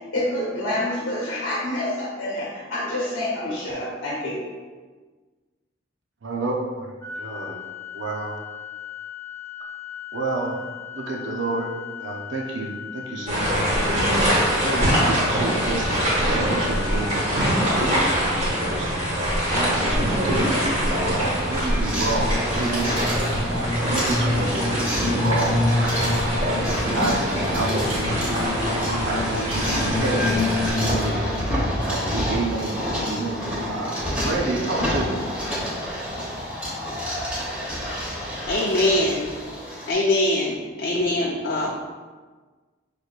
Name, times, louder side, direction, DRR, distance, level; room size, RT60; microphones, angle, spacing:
voice 1, 0.1-4.4, left 1 dB, 85° left, -5 dB, 0.9 m, -27 dB
voice 2, 6.2-7.6 7.9-8.4 10.1-10.6 10.9-11.7 12.0-14.0 14.5-19.0 19.5-22.9 23.5-25.9 26.9-28.4 29.0-30.3 30.7-31.3 31.8-35.2, right 2 dB, 70° right, 0 dB, 0.6 m, -30 dB
Organ, 7.0-18.1, left 9 dB, 15° left, 1.5 m, -38 dB
sound 1, 13.3-30.7, equal, 35° right, 1.4 m, -24 dB
sound 2, 21.1-39.9, left 1 dB, 5° right, 1.1 m, -27 dB
voice 3, 38.5-39.3 39.9-41.7, left 1 dB, 50° left, -3 dB, 0.5 m, -22 dB
5.9 x 3.3 x 2.4 m, 1.4 s
head